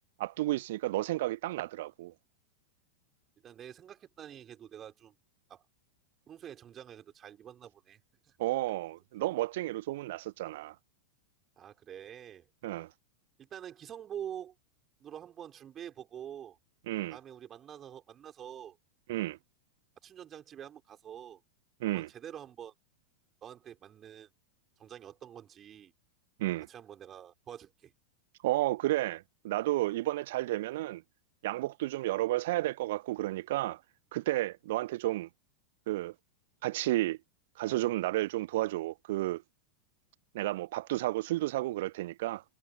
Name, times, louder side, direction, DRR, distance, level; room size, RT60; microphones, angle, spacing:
voice 1, 0.2-2.1 8.4-10.7 12.6-12.9 16.9-17.2 19.1-19.4 21.8-22.1 26.4-26.7 28.4-31.0 31.4-33.8 34.1-35.3 35.9-36.1 36.6-37.2 37.6-39.4 40.3-42.4, right 17 dB, 55° right, 0.5 m, -32 dB
voice 2, 3.4-5.1 5.5-5.6 6.3-8.0 8.3-8.4 11.6-12.5 13.4-14.5 15.0-16.6 17.1-18.8 20.0-21.4 21.9-22.7 23.4-24.3 24.8-25.9 26.7-27.9, right 9 dB, 25° right, 4.3 m, -46 dB
figure-of-eight pair, 90°, 0 cm